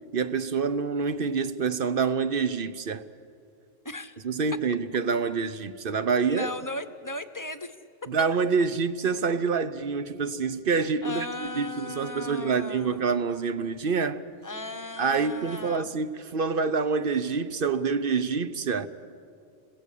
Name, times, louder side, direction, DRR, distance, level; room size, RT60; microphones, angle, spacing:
voice 1, 0.1-3.0 4.2-6.5 8.1-14.2 15.0-18.9, right 5 dB, 50° right, 0.9 m, -27 dB
voice 2, 3.8-4.2 6.3-7.7 11.0-13.0 14.4-15.9, left 2 dB, 15° left, 0.9 m, -36 dB
28.0 x 21.0 x 8.5 m
omnidirectional pair, 1.3 m